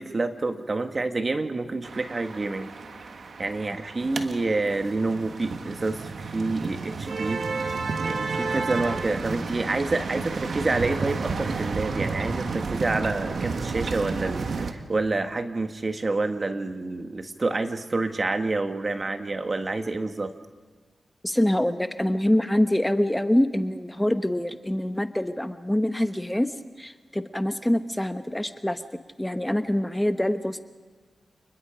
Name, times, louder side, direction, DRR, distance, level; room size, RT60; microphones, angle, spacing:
voice 1, 0.0-2.7 3.4-7.7 8.0-20.3, right 3 dB, 45° right, 7 dB, 1.6 m, -28 dB
sound 1, 1.8-14.7, right 4 dB, 70° right, 1.6 m, -31 dB
voice 2, 21.2-26.5 26.8-28.8 29.2-30.6, left 1 dB, 10° left, 10 dB, 1.0 m, -25 dB
28.5 x 21.0 x 5.1 m, 1.4 s
cardioid pair, 50°, 0 cm